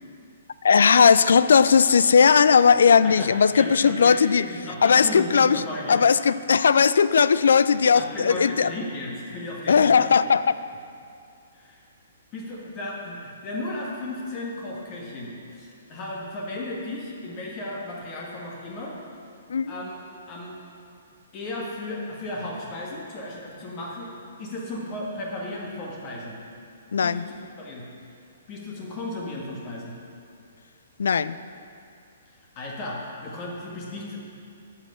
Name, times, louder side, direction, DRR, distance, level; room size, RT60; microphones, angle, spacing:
voice 1, 0.6-4.5 4.8-5.6 5.9-8.7 9.7-10.6 19.5-19.7 26.9-27.2 31.0-31.4, left 6 dB, 65° left, 16 dB, 0.3 m, -18 dB
voice 2, 3.0-6.0 7.9-10.1 11.5-11.8 12.3-19.0 19.7-20.0 20.3-20.5 21.3-24.1 24.4-26.4 27.0-27.9 28.5-29.9 32.5-34.3, left 1 dB, 35° left, -3 dB, 1.7 m, -35 dB
11.0 x 5.7 x 6.7 m, 2.4 s
figure-of-eight pair, 120°, 0 cm